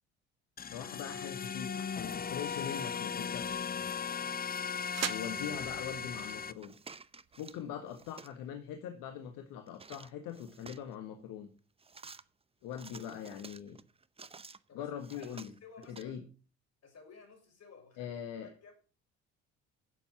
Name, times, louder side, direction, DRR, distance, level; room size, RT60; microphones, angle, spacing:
voice 1, 0.6-3.7 5.1-6.7 7.4-11.5 12.6-13.8 14.7-15.5 15.9-16.2 18.0-18.5, left 9 dB, 70° left, 1.6 m, -42 dB
sound 1, 0.6-6.5, left 6 dB, 25° left, 0.8 m, -37 dB
sound 2, 3.3-8.2, right 10 dB, 50° right, 1.1 m, -46 dB
sound 3, 6.2-7.6 7.9-8.4 9.7-10.9 11.8-12.2 12.7-14.6 15.0-16.0, right 4 dB, 15° right, 0.7 m, -52 dB
voice 2, 14.7-16.2 16.8-18.7, left 5 dB, 50° left, 6.0 m, -56 dB
11.0 x 7.3 x 5.8 m
hypercardioid pair, 55°, 34 cm